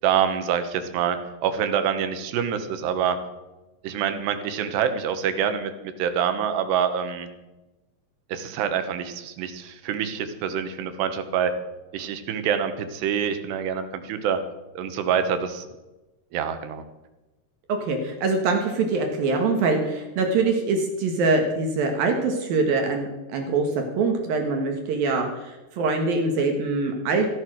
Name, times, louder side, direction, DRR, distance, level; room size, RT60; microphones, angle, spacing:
voice 1, 0.0-3.2 3.8-5.7 6.0-7.3 8.3-11.5 11.9-14.4 14.8-15.7 16.3-16.8, right 8 dB, 80° right, 9 dB, 3.3 m, -26 dB
voice 2, 17.7-27.3, right 3 dB, 65° right, 3 dB, 3.1 m, -24 dB
15.5 x 11.5 x 6.3 m, 1.1 s
omnidirectional pair, 4.8 m